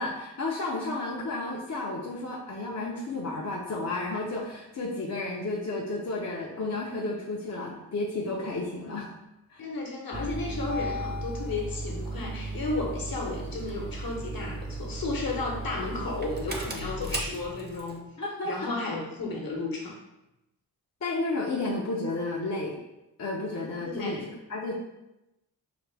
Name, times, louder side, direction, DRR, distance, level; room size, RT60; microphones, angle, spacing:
voice 1, 0.0-9.1 9.5-9.6 18.2-18.7 21.0-22.8 23.2-24.7, left 2 dB, 45° left, -3 dB, 0.6 m, -32 dB
voice 2, 9.6-18.0 18.4-20.0 23.9-24.2, left 3 dB, 60° left, -1 dB, 1.0 m, -33 dB
Engine starting, 10.1-18.0, right 1 dB, 25° right, 0.6 m, -35 dB
4.8 x 2.1 x 3.3 m, 0.93 s
wide cardioid pair, 75°, 40 cm